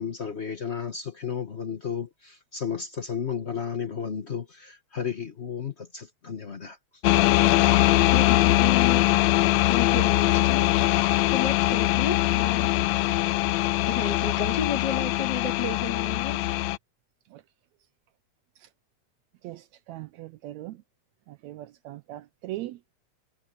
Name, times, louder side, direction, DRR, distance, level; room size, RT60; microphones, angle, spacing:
voice 1, 0.0-7.0, left 7 dB, 50° left, 0.7 m, -33 dB
sound 1, 7.0-16.8, left 17 dB, 80° left, 1.7 m, -22 dB
voice 2, 8.1-9.3 9.7-10.7 11.3-12.7 13.9-16.4, left 6 dB, 35° left, 4.2 m, -32 dB
voice 3, 19.4-20.8 21.3-22.9, right 16 dB, 75° right, 1.8 m, -40 dB
omnidirectional pair, 3.4 m